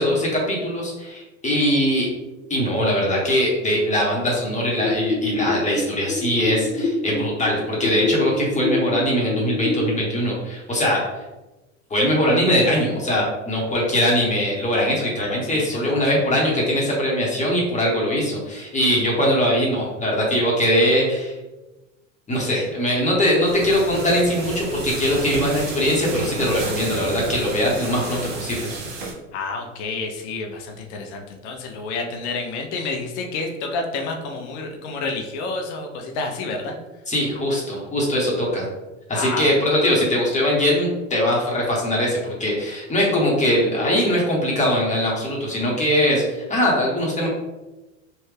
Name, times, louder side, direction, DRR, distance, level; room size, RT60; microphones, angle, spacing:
voice 1, 0.0-2.1 2.5-11.0 11.9-21.3 22.3-28.7 37.1-38.7 39.1-47.3, equal, 20° left, -4 dB, 1.2 m, -21 dB
sound 1, 4.8-9.8, left 3 dB, 75° left, 1.2 m, -26 dB
voice 2, 15.5-15.9 29.3-36.8 39.1-39.5, left 3 dB, 60° left, 3 dB, 0.7 m, -29 dB
sound 2, 23.4-29.1, right 2 dB, 75° right, 1.3 m, -31 dB
3.2 x 2.6 x 3.3 m, 1.1 s
hypercardioid pair, 90°, 40 cm